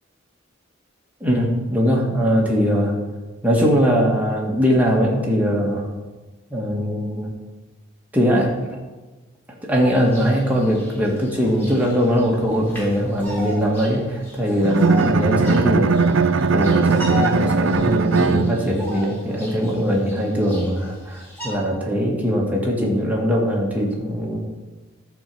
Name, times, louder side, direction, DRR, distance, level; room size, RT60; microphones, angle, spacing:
voice 1, 1.2-3.0 3.4-5.9 6.5-7.3 8.1-8.8 9.6-16.0 16.5-24.4, equal, 10° right, -3 dB, 2.0 m, -21 dB
Bird vocalization bird call bird song, 9.9-21.5, left 1 dB, 10° left, 3.4 m, -36 dB
Bowed string instrument, 14.6-18.9, right 4 dB, 70° right, 0.5 m, -19 dB
13.0 x 4.5 x 7.0 m, 1.2 s
head